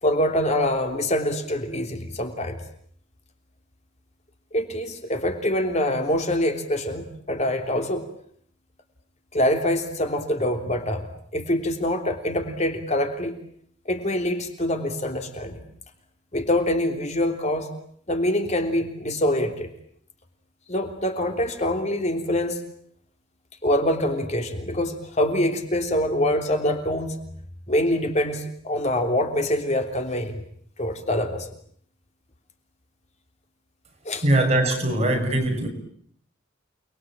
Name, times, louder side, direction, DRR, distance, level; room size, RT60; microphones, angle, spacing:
voice 1, 0.0-2.6 4.5-8.0 9.3-13.3 13.8-15.6 16.3-17.7 18.1-19.7 20.7-22.6 23.6-27.2 27.7-30.4 30.8-31.5 34.0-34.3, left 1 dB, 35° left, 4 dB, 3.4 m, -25 dB
voice 2, 34.2-35.7, right 1 dB, 35° right, 4 dB, 6.6 m, -21 dB
30.0 x 22.5 x 8.9 m, 0.64 s
head